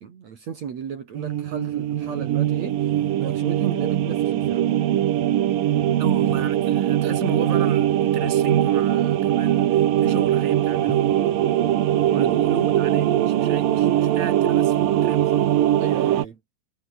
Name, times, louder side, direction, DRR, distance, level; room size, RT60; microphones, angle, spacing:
voice 1, 0.0-2.9 3.2-4.7 12.1-12.4 15.8-16.4, right 7 dB, 50° right, 3.2 m, -33 dB
sound 1, 1.1-16.3, right 12 dB, 70° right, 3.1 m, -21 dB
voice 2, 5.7-11.4 12.0-15.5, right 4 dB, 20° right, 3.0 m, -34 dB
omnidirectional pair, 4.3 m